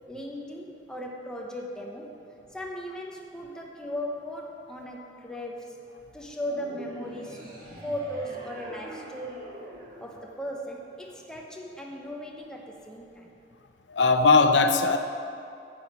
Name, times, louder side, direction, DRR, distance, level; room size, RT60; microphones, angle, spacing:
voice 1, 0.1-2.2 2.5-5.8 6.1-9.4 10.0-13.3, equal, 5° left, -1 dB, 0.9 m, -37 dB
sound 1, 6.4-11.0, equal, 50° right, 1.8 m, -44 dB
voice 2, 13.9-15.0, left 4 dB, 80° left, 8 dB, 0.6 m, -19 dB
9.6 x 7.2 x 6.1 m, 2.7 s
head